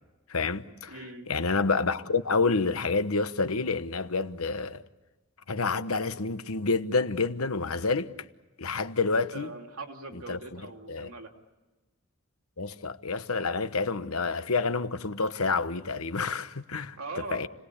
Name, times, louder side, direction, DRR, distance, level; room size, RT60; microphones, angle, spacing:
voice 1, 0.3-4.8 5.5-8.1 8.6-9.5 10.3-10.6 10.9-11.1 12.6-17.0 17.3-17.5, left 4 dB, 80° left, 1.1 m, -28 dB
voice 2, 0.9-1.3 9.3-11.3 17.0-17.5, right 3 dB, 85° right, 2.9 m, -41 dB
30.0 x 19.5 x 8.4 m
head